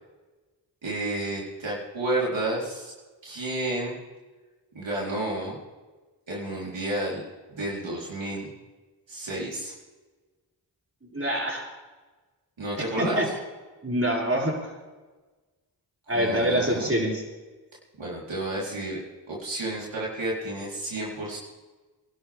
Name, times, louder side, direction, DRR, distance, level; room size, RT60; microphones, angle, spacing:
voice 1, 0.8-2.9 3.2-4.0 4.7-5.6 6.3-8.5 9.1-9.7 12.6-13.2 16.1-16.9 18.0-19.0 19.3-21.4, right 1 dB, 85° right, -5 dB, 4.3 m, -31 dB
voice 2, 11.0-11.7 12.8-13.3 13.8-14.5 16.1-17.2, equal, 30° right, -2 dB, 6.8 m, -25 dB
26.0 x 12.0 x 3.7 m, 1.2 s
cardioid pair, 40°, 44 cm